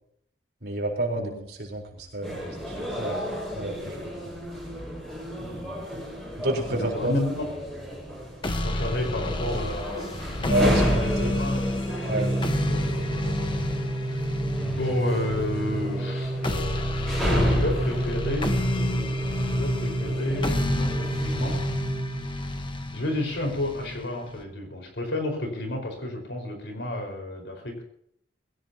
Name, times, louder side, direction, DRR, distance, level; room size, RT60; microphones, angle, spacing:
voice 1, 0.6-4.0 4.3-4.4 6.4-7.1 10.5-11.4 12.1-12.3, right 1 dB, 65° right, -1 dB, 4.2 m, -29 dB
sound 1, 2.2-21.6, equal, 5° left, 5.9 m, -32 dB
voice 2, 5.4-6.0 6.7-7.4 8.6-11.6 12.5-13.7 14.0-14.3 14.7-18.6 19.4-21.7 22.0-22.1 22.9-27.8, left 1 dB, 80° left, 3 dB, 4.9 m, -31 dB
sound 2, 8.4-24.4, left 1 dB, 30° left, 1.3 m, -30 dB
Organ, 11.8-22.7, right 2 dB, 15° right, 3.0 m, -31 dB
21.5 x 16.5 x 2.9 m, 0.67 s
head